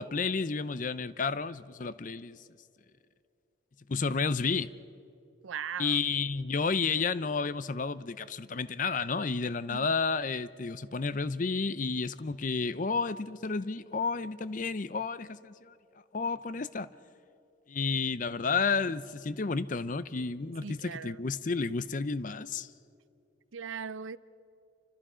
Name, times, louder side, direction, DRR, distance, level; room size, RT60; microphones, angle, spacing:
voice 1, 0.0-2.4 3.9-4.7 5.8-15.7 16.1-16.9 17.7-22.7, left 4 dB, 40° left, 0.5 m, -31 dB
voice 2, 5.4-6.0 9.7-9.9 20.6-21.2 23.5-24.2, right 7 dB, 80° right, 0.5 m, -39 dB
28.5 x 25.5 x 5.0 m
head